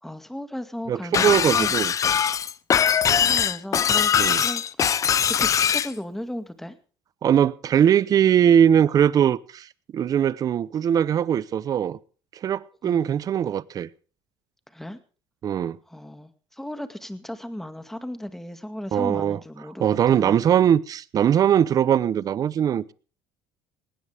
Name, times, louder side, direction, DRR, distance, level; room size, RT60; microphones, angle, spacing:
voice 1, 0.0-1.7 3.1-4.9 5.3-6.8 12.8-13.1 14.7-15.0 15.9-20.5, left 1 dB, 5° left, 2.1 m, -36 dB
voice 2, 0.9-1.9 4.2-4.4 7.2-9.7 9.9-12.0 12.4-13.9 15.4-15.8 18.9-19.4 19.8-22.9, right 9 dB, 45° right, 0.8 m, -21 dB
Shatter, 1.1-5.9, left 8 dB, 35° left, 0.8 m, -21 dB
19.5 x 17.0 x 3.5 m
cardioid pair, 110°, 9 cm